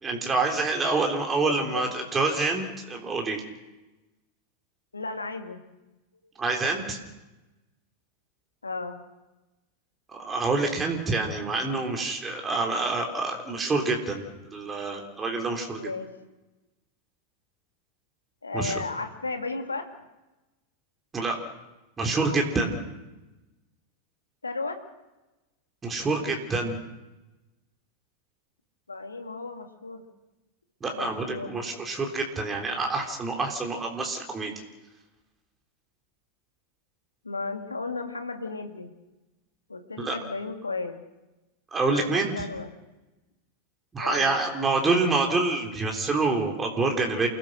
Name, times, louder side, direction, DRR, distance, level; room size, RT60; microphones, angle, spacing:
voice 1, 0.0-3.4 6.4-7.0 10.1-15.8 18.5-18.8 21.1-21.4 22.0-22.8 25.8-26.8 30.8-34.5 40.0-40.1 41.7-42.3 43.9-47.3, right 3 dB, 15° right, 2 dB, 3.5 m, -27 dB
voice 2, 1.4-1.8 4.9-5.6 8.6-9.0 15.8-16.1 18.4-19.9 24.4-24.8 28.9-30.0 30.9-31.5 37.2-38.9 39.7-41.0 41.9-42.7 44.0-44.3, left 3 dB, 80° left, 6 dB, 2.4 m, -34 dB
28.5 x 17.5 x 6.4 m, 1.1 s
figure-of-eight pair, 90°, 0 cm